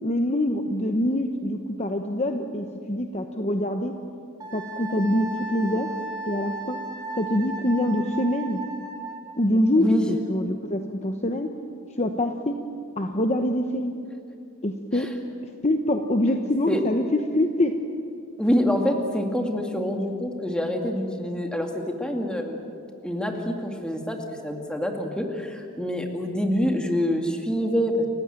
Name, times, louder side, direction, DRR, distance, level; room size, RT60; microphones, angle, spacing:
voice 1, 0.0-3.9 4.5-5.9 6.3-6.8 7.2-8.6 9.4-11.5 12.0-12.5 13.0-13.9 14.6-15.1 15.6-17.7, left 1 dB, 30° left, 5 dB, 1.0 m, -25 dB
Wind instrument woodwind instrument, 4.4-9.3, right 3 dB, 20° right, 3.3 m, -35 dB
voice 2, 18.4-22.6 23.0-24.2 24.4-28.1, equal, 5° left, 3 dB, 2.2 m, -26 dB
30.0 x 15.5 x 9.0 m, 2.4 s
head